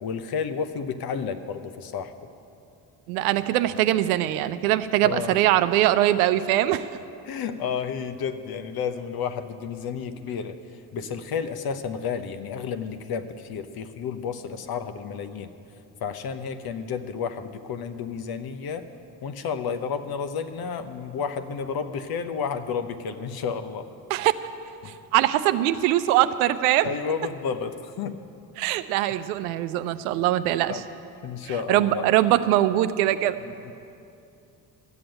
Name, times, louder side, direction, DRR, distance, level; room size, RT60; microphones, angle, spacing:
voice 1, 0.0-2.1 5.0-5.4 7.2-10.6 10.9-15.5 16.0-18.9 19.2-23.9 24.8-25.0 26.8-28.2 30.7-30.8 31.2-32.0 33.5-33.7, left 6 dB, 55° left, 10 dB, 1.1 m, -31 dB
voice 2, 3.1-6.9 24.1-24.3 25.1-26.9 28.6-30.8 31.4-33.4, right 14 dB, 90° right, 12 dB, 0.6 m, -22 dB
13.5 x 7.8 x 8.9 m, 2.6 s
hypercardioid pair, 65°, 43 cm